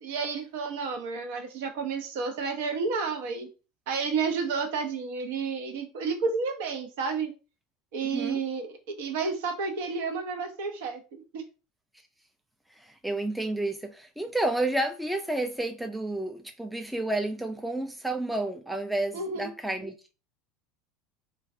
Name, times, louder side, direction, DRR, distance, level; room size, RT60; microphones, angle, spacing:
voice 1, 0.0-3.5 3.9-7.3 7.9-11.4 19.1-19.5, right 5 dB, 75° right, 0.6 m, -31 dB
voice 2, 8.0-8.4 12.8-20.1, right 1 dB, 5° right, 0.4 m, -31 dB
3.1 x 2.2 x 2.5 m
hypercardioid pair, 90°, 0 cm